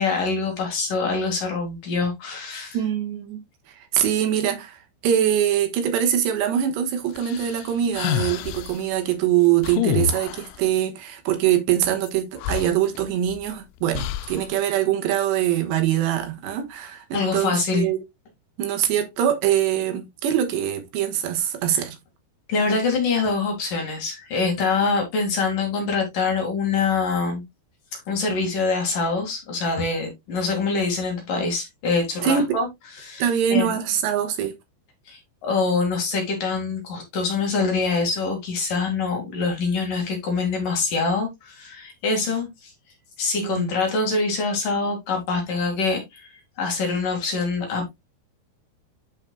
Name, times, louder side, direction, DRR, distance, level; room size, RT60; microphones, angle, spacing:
voice 1, 0.0-2.8 17.1-17.9 21.7-21.8 22.5-27.4 27.9-32.7 33.0-33.7 35.1-42.7 43.2-47.9, left 4 dB, 55° left, 3.1 m, -25 dB
voice 2, 2.7-3.4 3.8-18.0 18.6-22.0 32.2-32.6 33.2-34.5 43.4-43.7, right 10 dB, 75° right, 3.2 m, -23 dB
sound 1, 7.2-8.8 9.6-10.6 12.1-12.2 12.4-13.4 13.9-14.5, left 11 dB, 85° left, 3.0 m, -28 dB
11.0 x 5.3 x 2.2 m
omnidirectional pair, 5.3 m